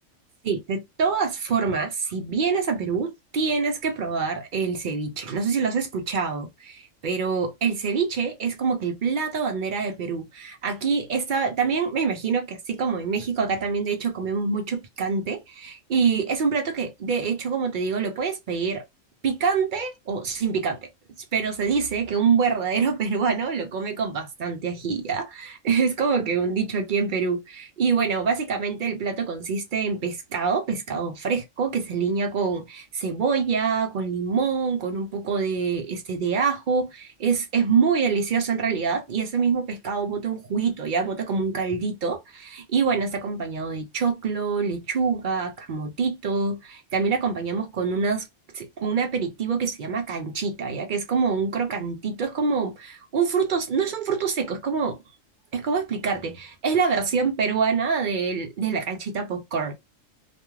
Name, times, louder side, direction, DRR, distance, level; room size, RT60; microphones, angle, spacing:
voice 1, 0.4-18.8 19.2-20.8 21.3-48.3 48.5-55.0 55.5-59.7, right 5 dB, 60° right, 0.5 m, -25 dB
2.4 x 2.3 x 3.0 m
omnidirectional pair, 1.4 m